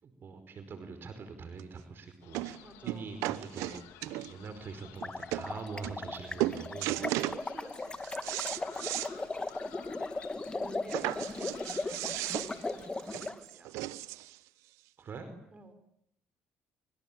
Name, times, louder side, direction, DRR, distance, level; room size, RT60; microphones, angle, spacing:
voice 1, 0.0-3.8 4.3-7.0 15.0-15.3, right 5 dB, 50° right, 9 dB, 5.0 m, -44 dB
sound 1, 1.6-1.7 2.3-2.6 2.9-4.5 5.0-5.1 5.3-5.5 5.8-6.1 6.4-7.4 7.8-9.1 9.5-9.6 9.9-10.0 10.9-14.4 15.2-15.3, right 16 dB, 80° right, 1.2 m, -35 dB
sound 2, 2.2-13.0, left 13 dB, 85° left, 3.0 m, -55 dB
voice 2, 2.6-3.1 6.9-8.5 10.5-13.8 15.5-15.7, right 3 dB, 25° right, 9 dB, 5.9 m, -51 dB
sound 3, 4.9-13.4, left 3 dB, 20° left, 2.5 m, -38 dB
26.5 x 26.0 x 8.8 m, 0.74 s
supercardioid pair, 80°, 5 cm